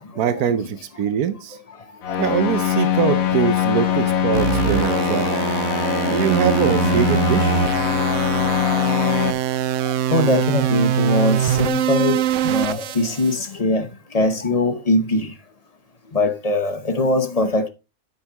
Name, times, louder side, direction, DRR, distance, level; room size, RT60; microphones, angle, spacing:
voice 1, 0.2-1.6 2.2-5.4 6.0-7.9, right 9 dB, 85° right, 1.3 m, -23 dB
sound 1, 2.0-9.3, left 9 dB, 70° left, 1.4 m, -22 dB
sound 2, 4.3-13.3, right 11 dB, 65° right, 0.9 m, -23 dB
voice 2, 10.1-12.2 12.4-13.8 14.1-15.3 16.1-17.7, left 2 dB, 30° left, 0.9 m, -21 dB
9.6 x 8.3 x 3.0 m
omnidirectional pair, 1.5 m